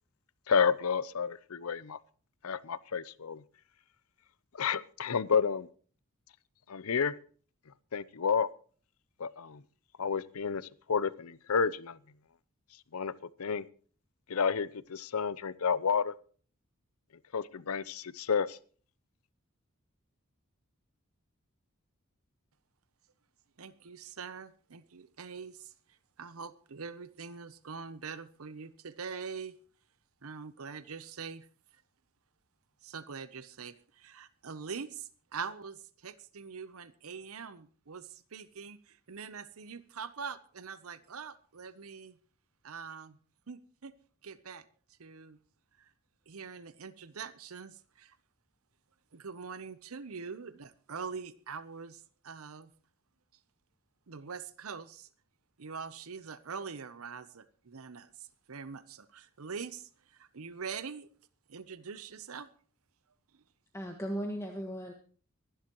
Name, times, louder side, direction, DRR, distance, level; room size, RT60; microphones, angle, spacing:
voice 1, 0.5-2.0 2.4-3.4 4.6-5.7 6.7-7.1 7.9-8.5 9.2-9.6 10.0-12.0 12.9-13.1 13.4-13.6 14.3-16.1 17.3-18.6, left 6 dB, 85° left, 19 dB, 0.7 m, -30 dB
voice 2, 23.6-29.5 30.2-31.5 31.7-31.8 32.8-42.2 42.6-43.2 43.5-43.9 44.2-44.6 45.0-45.4 45.8-45.9 46.3-48.2 49.1-52.7 54.1-55.1 55.6-61.1 61.5-62.5, right 5 dB, 80° right, 15 dB, 0.8 m, -44 dB
voice 3, 63.7-64.9, equal, 15° left, 2 dB, 1.6 m, -36 dB
25.5 x 11.5 x 3.0 m, 0.43 s
head